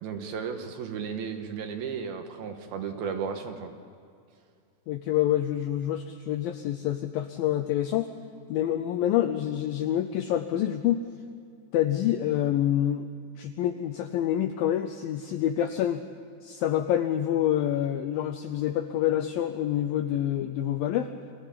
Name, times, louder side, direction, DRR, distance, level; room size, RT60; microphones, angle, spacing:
voice 1, 0.0-3.7, right 6 dB, 70° right, 6 dB, 2.9 m, -34 dB
voice 2, 4.9-8.1 8.5-11.0 11.7-13.1 13.4-16.0 16.4-21.1, left 11 dB, 85° left, 8 dB, 2.1 m, -27 dB
24.5 x 15.5 x 8.5 m, 2.3 s
omnidirectional pair, 4.9 m